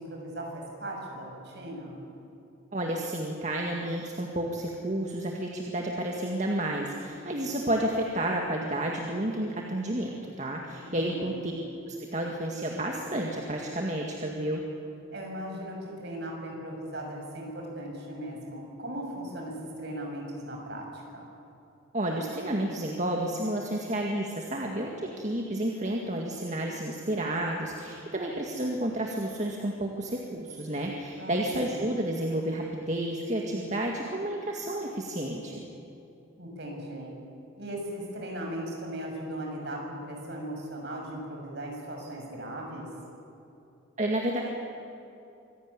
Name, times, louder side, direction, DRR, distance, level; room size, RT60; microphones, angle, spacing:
voice 1, 0.0-2.0 10.7-11.3 15.1-21.3 31.2-31.9 36.4-37.1 37.6-42.9, right 1 dB, 55° right, 0 dB, 6.5 m, -38 dB
voice 2, 2.7-11.5 11.9-14.6 21.9-35.6 44.0-44.4, right 1 dB, 35° right, 0 dB, 2.0 m, -31 dB
25.5 x 17.0 x 9.7 m, 2.9 s
head